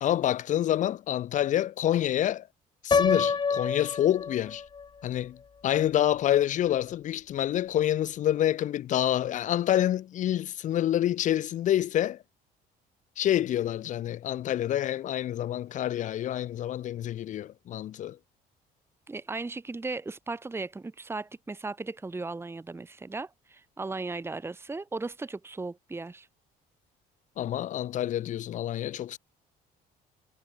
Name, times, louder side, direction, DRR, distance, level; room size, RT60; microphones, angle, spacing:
voice 1, 0.0-2.5 2.8-4.6 5.0-5.4 5.6-12.2 13.2-18.2 27.4-29.2, left 12 dB, 50° left, 0.4 m, -27 dB
Piano, 2.9-4.9, left 5 dB, 25° left, 1.1 m, -27 dB
voice 2, 19.1-26.3, right 3 dB, 15° right, 1.3 m, -36 dB
cardioid pair, 110°, 17 cm